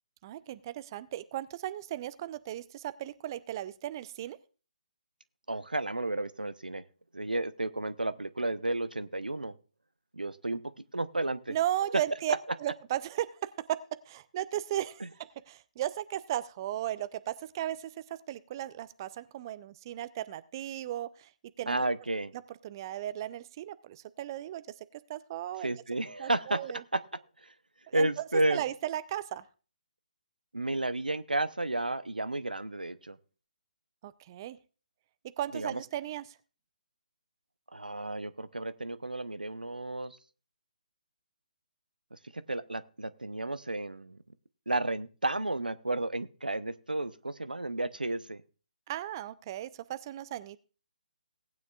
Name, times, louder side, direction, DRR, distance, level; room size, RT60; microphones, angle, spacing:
voice 1, 0.2-4.4 11.5-12.3 12.6-13.8 14.1-15.0 15.5-21.3 21.6-21.9 22.6-24.6 24.9-25.7 26.2-26.8 27.9-28.1 28.5-29.4 34.0-34.6 35.4-36.4 48.9-50.6, right 12 dB, 30° right, 15 dB, 0.4 m, -36 dB
voice 2, 5.5-6.8 7.1-9.6 10.1-11.6 11.9-12.0 12.3-12.4 21.7-22.3 25.6-27.5 27.9-28.6 30.5-33.2 35.5-35.8 37.7-40.2 42.1-44.2 44.7-48.4, right 2 dB, 85° right, 15 dB, 0.7 m, -32 dB
18.5 x 9.3 x 2.4 m, 0.34 s
figure-of-eight pair, 140°, 5 cm